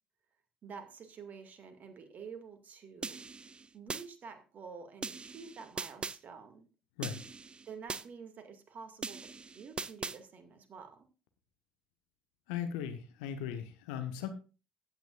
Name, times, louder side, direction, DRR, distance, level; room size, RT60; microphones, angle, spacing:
voice 1, 0.6-3.2 3.7-6.7 7.7-11.1, right 5 dB, 45° right, 7 dB, 2.1 m, -49 dB
sound 1, 3.0-4.0 5.0-6.2 7.0-8.0 9.0-10.2, right 4 dB, 25° right, 0.6 m, -40 dB
voice 2, 12.5-14.3, left 9 dB, 70° left, 8 dB, 1.2 m, -38 dB
15.5 x 9.4 x 2.5 m, 0.32 s
figure-of-eight pair, 50°, 4 cm